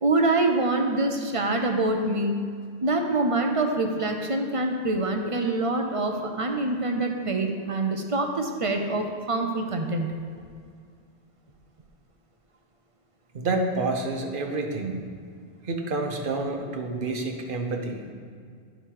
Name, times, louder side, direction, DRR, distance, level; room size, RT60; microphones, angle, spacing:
voice 1, 0.0-2.4 2.8-10.2, right 2 dB, 35° right, 3 dB, 0.6 m, -25 dB
voice 2, 13.3-15.0 15.6-18.1, right 2 dB, 55° right, 3 dB, 1.0 m, -28 dB
10.5 x 5.0 x 4.6 m, 2.2 s
omnidirectional pair, 1.1 m